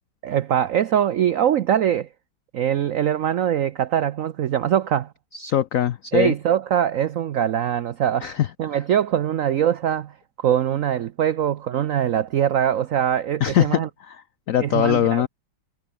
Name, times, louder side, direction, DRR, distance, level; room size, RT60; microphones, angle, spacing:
voice 1, 0.2-2.1 2.5-5.1 6.1-8.3 8.6-13.9 14.6-15.3, right 10 dB, 80° right, 0.7 m, -22 dB
voice 2, 5.3-6.3 8.2-8.8 13.4-15.3, left 11 dB, 90° left, 0.7 m, -22 dB
omnidirectional pair, 2.2 m